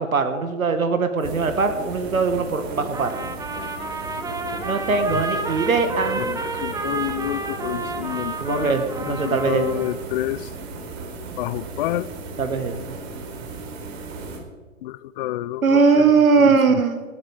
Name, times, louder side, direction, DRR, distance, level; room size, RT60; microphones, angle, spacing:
voice 1, 0.0-3.1 4.6-6.2 8.4-9.8 12.4-13.0 15.6-17.0, right 4 dB, 90° right, 7 dB, 1.8 m, -20 dB
sound 1, 1.2-14.4, right 3 dB, 50° right, 4.4 m, -36 dB
Trumpet, 2.9-10.1, right 3 dB, 10° right, 1.4 m, -31 dB
voice 2, 6.3-8.7 9.1-10.5 11.4-12.1 14.8-15.8 16.4-16.5, left 14 dB, 45° left, 19 dB, 0.5 m, -28 dB
20.0 x 12.0 x 4.9 m, 1.4 s
hypercardioid pair, 115°, 40 cm